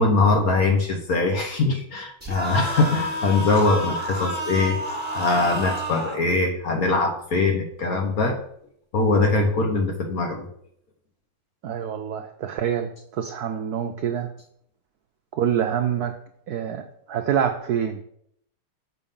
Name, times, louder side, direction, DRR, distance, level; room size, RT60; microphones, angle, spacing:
voice 1, 0.0-4.8 5.1-8.4 8.9-10.5, left 3 dB, 55° left, 3 dB, 1.2 m, -22 dB
sound 1, 2.2-6.2, equal, 5° right, 1.8 m, -29 dB
voice 2, 11.6-14.3 15.3-16.1 16.5-16.8 17.1-18.0, right 8 dB, 75° right, 6 dB, 0.8 m, -26 dB
7.0 x 5.4 x 5.4 m, 0.68 s
omnidirectional pair, 2.3 m